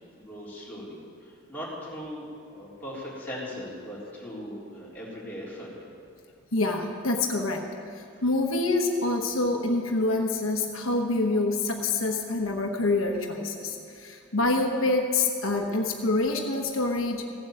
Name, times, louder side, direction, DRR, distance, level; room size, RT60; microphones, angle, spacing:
voice 1, 0.1-5.7, equal, 10° left, -8 dB, 3.6 m, -39 dB
voice 2, 6.5-7.6 7.9-17.3, left 2 dB, 75° left, 1 dB, 1.2 m, -26 dB
16.5 x 7.7 x 7.6 m, 2.4 s
head